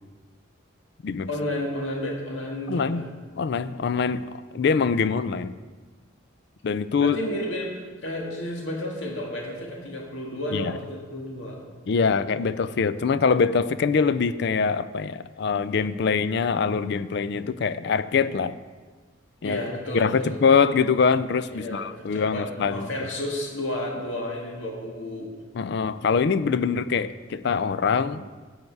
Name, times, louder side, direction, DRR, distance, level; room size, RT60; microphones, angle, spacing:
voice 1, 1.3-3.1 7.0-7.7 8.0-11.6 19.4-20.4 21.5-25.3, left 1 dB, 75° left, 0 dB, 1.9 m, -32 dB
voice 2, 2.7-3.0 3.4-5.5 6.6-7.2 10.5-10.7 11.9-18.6 19.4-19.6 19.9-23.1 25.5-28.3, left 5 dB, 60° left, 15 dB, 0.4 m, -24 dB
11.0 x 8.1 x 4.6 m, 1.4 s
head